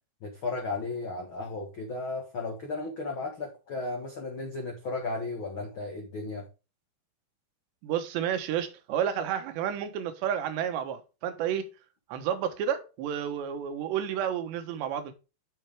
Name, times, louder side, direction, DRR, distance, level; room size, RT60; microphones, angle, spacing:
voice 1, 0.2-6.5, left 3 dB, 85° left, 1.1 m, -35 dB
voice 2, 7.8-11.7 12.1-15.1, right 9 dB, 90° right, 3.4 m, -31 dB
9.0 x 6.4 x 3.5 m
omnidirectional pair, 4.8 m